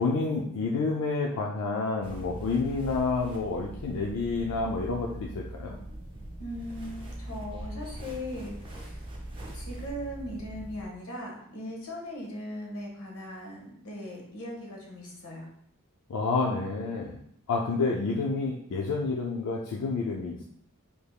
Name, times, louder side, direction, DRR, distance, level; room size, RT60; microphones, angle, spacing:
voice 1, 0.0-5.8 16.1-17.2 17.5-20.4, left 4 dB, 90° left, -1 dB, 0.4 m, -29 dB
sound 1, 2.0-10.9, right 1 dB, 25° right, 0.5 m, -41 dB
voice 2, 6.4-9.0 9.5-15.5, left 1 dB, 70° left, -1 dB, 1.0 m, -39 dB
3.4 x 3.4 x 2.3 m, 0.69 s
head